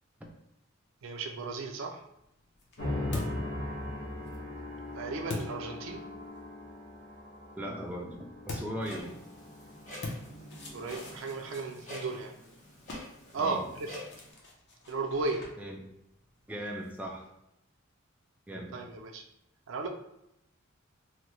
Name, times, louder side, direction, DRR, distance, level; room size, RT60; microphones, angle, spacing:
voice 1, 1.0-2.0 4.9-6.0 10.7-12.3 13.3-13.9 14.9-15.4 18.7-19.2 19.7-19.9, right 3 dB, 65° right, 2 dB, 0.4 m, -35 dB
sound 1, 2.0-6.4 8.4-17.3, left 2 dB, 55° left, 0.6 m, -45 dB
sound 2, 2.8-11.2, left 1 dB, 75° left, 1.0 m, -40 dB
voice 2, 7.6-9.1 13.4-13.7 15.6-15.8 16.5-17.3 18.5-18.8, equal, 5° right, -1 dB, 0.4 m, -38 dB
Clock, 8.8-14.3, left 1 dB, 40° left, 1.0 m, -48 dB
3.1 x 2.1 x 3.0 m, 0.84 s
head